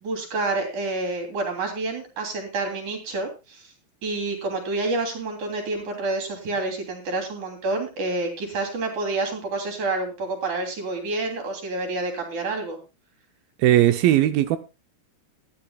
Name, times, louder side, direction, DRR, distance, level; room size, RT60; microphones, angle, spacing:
voice 1, 0.0-3.7 4.0-12.8, right 2 dB, 55° right, 4.2 m, -28 dB
voice 2, 13.6-14.6, right 13 dB, 80° right, 2.4 m, -18 dB
18.5 x 12.0 x 2.3 m
omnidirectional pair, 4.4 m